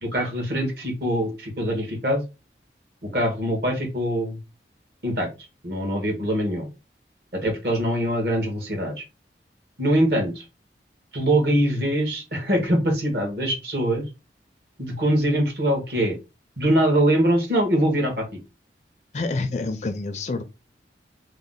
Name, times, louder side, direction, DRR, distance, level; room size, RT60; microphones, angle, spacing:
voice 1, 0.0-2.2 3.0-4.4 5.0-5.3 5.6-6.7 7.3-9.0 9.8-10.4 11.1-14.0 14.8-16.2 16.6-18.2, right 1 dB, 60° right, 1.3 m, -23 dB
voice 2, 19.1-20.4, left 3 dB, 40° left, 0.4 m, -27 dB
3.1 x 2.1 x 3.8 m
head